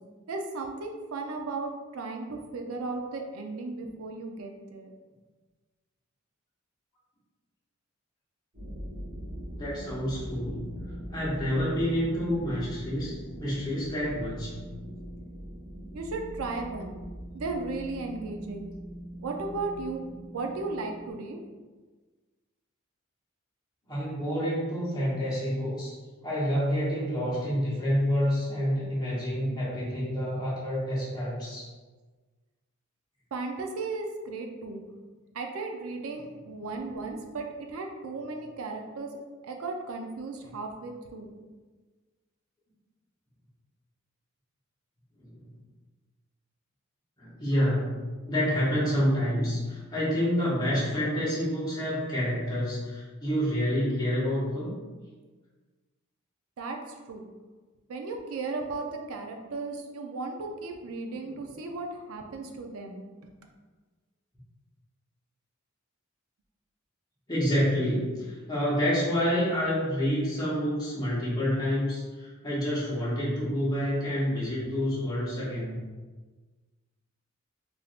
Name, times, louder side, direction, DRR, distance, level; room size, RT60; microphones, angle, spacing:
voice 1, 0.3-4.9 15.9-17.0 17.3-18.7 19.2-21.4 33.3-34.8 35.3-39.1 39.4-41.3 56.6-56.8 57.1-57.3 57.9-63.3, right 3 dB, 80° right, 3 dB, 0.4 m, -35 dB
sound 1, 8.5-21.1, equal, 45° right, 1.1 m, -41 dB
voice 2, 9.5-10.6 11.1-13.1 13.4-14.5 23.9-25.9 26.2-31.7 45.2-45.5 47.2-54.7 61.1-61.4 67.3-75.8, equal, 20° left, -8 dB, 1.0 m, -28 dB
3.4 x 2.6 x 2.3 m, 1.3 s
head